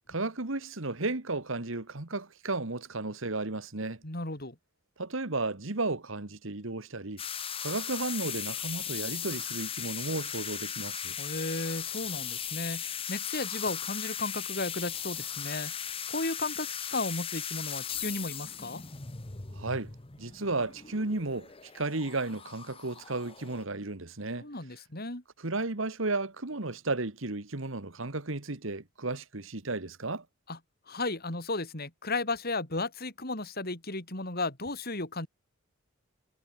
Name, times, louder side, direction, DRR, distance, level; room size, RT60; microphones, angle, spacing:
voice 1, 0.1-4.0 5.0-7.2 7.6-11.2 19.5-19.9 20.2-21.5 21.7-24.5 25.4-30.2, right 2 dB, 65° right, 1.7 m, -33 dB
voice 2, 4.0-4.6 11.2-18.8 24.4-25.2 30.5-30.6 30.9-35.3, left 2 dB, 45° left, 4.5 m, -34 dB
sound 1, 7.2-23.6, left 8 dB, 25° left, 1.1 m, -38 dB
head